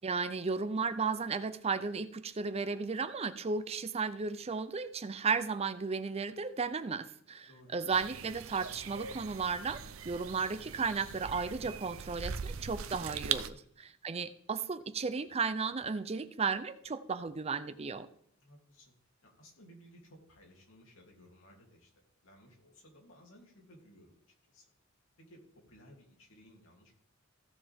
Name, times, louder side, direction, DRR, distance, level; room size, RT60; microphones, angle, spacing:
voice 1, 0.0-18.1, right 5 dB, 30° right, 13 dB, 0.5 m, -34 dB
voice 2, 7.5-7.8 13.5-13.7 18.4-18.9 19.2-21.9 22.2-24.2 24.5-24.6 25.2-26.9, equal, 70° left, 0 dB, 3.0 m, -58 dB
sound 1, 7.9-13.5, right 7 dB, 80° right, 0.6 m, -41 dB
15.5 x 7.2 x 3.6 m, 0.67 s
head